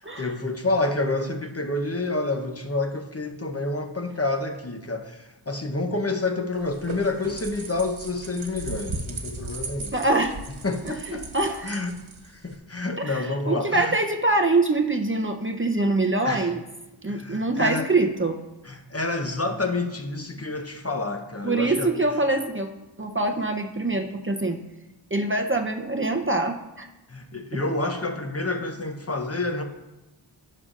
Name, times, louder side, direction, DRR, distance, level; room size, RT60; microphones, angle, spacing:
voice 1, 0.0-9.9 10.6-11.3 11.6-12.0 12.2-14.0 16.2-16.5 17.1-17.9 18.6-21.9 27.1-29.6, left 2 dB, 30° left, 5 dB, 0.9 m, -28 dB
sound 1, 6.5-12.6, right 3 dB, 85° right, 1.2 m, -37 dB
voice 2, 9.9-10.5 10.8-11.8 13.0-16.6 17.0-18.4 21.4-22.7 23.0-24.6 25.1-26.9 27.5-27.7, right 2 dB, 25° right, 3 dB, 0.7 m, -24 dB
16.0 x 6.5 x 2.5 m, 0.99 s
wide cardioid pair, 75°, 47 cm